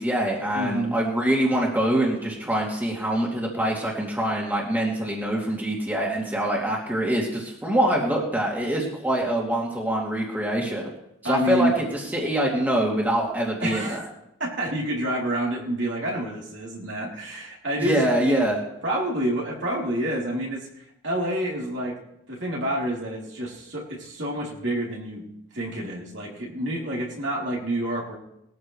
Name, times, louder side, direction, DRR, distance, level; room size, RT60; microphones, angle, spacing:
voice 1, 0.0-10.8 11.2-13.9 17.8-18.6, right 1 dB, 10° right, -3 dB, 2.6 m, -24 dB
voice 2, 0.5-1.0 11.2-11.7 13.6-14.0 14.4-18.5 18.8-20.7 21.0-22.0 22.3-25.2 25.5-28.2, right 1 dB, 60° right, -3 dB, 3.3 m, -28 dB
20.5 x 14.0 x 3.3 m, 0.80 s
head